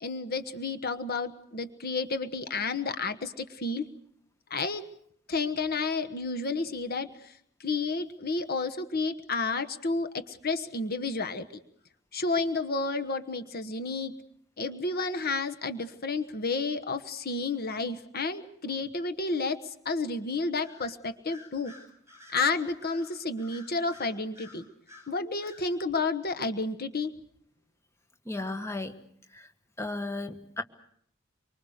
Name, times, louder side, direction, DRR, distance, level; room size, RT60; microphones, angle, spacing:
voice 1, 0.0-3.8 4.5-4.8 5.3-7.1 7.6-11.5 12.1-14.1 14.6-21.7 22.3-24.6 25.1-27.1, left 3 dB, 50° left, 10 dB, 1.3 m, -31 dB
Bird vocalization bird call bird song, 20.5-21.0 21.3-25.1 25.4-25.7, left 2 dB, 15° right, 7.9 m, -52 dB
voice 2, 28.2-29.0 29.3-29.5 29.8-30.6, left 2 dB, 15° left, 7 dB, 1.6 m, -34 dB
25.5 x 24.5 x 6.6 m, 0.68 s
head